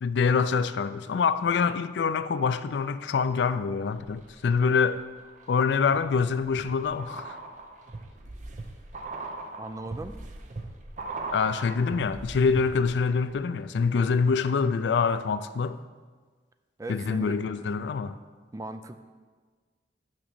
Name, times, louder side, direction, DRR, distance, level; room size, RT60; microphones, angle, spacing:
voice 1, 0.0-5.0 5.5-7.4 11.3-15.8 16.9-18.2, left 5 dB, 75° left, 13 dB, 0.4 m, -25 dB
sound 1, 4.0-4.7 5.2-13.0 13.3-13.4, right 3 dB, 45° right, 0.7 m, -40 dB
voice 2, 9.6-10.2 16.8-17.7 18.5-19.0, right 2 dB, 20° right, 9 dB, 0.4 m, -38 dB
6.4 x 6.1 x 6.0 m, 1.5 s
head